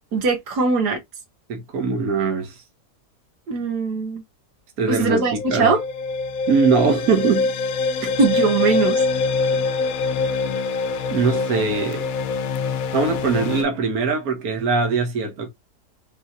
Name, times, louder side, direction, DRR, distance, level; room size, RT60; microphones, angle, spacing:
voice 1, 0.1-1.0 3.5-4.2 4.9-5.8 8.2-9.0, right 4 dB, 90° right, 1.7 m, -20 dB
voice 2, 1.5-2.6 4.8-5.7 6.5-7.5 8.0-8.2 11.1-12.1 12.9-15.5, right 4 dB, 65° right, 1.4 m, -21 dB
sound 1, 4.9-13.6, left 4 dB, 65° left, 1.0 m, -24 dB
5.4 x 2.9 x 2.6 m
omnidirectional pair, 1.7 m